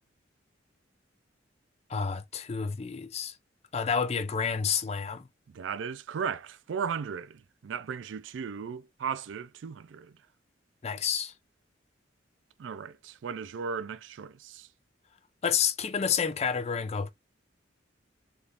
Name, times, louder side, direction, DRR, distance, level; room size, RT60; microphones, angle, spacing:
voice 1, 1.9-3.3 3.7-5.3 10.8-11.3 15.4-17.1, left 6 dB, 35° left, 0.4 m, -29 dB
voice 2, 5.5-10.1 12.6-14.7, right 6 dB, 80° right, 0.4 m, -36 dB
3.5 x 2.5 x 2.7 m
head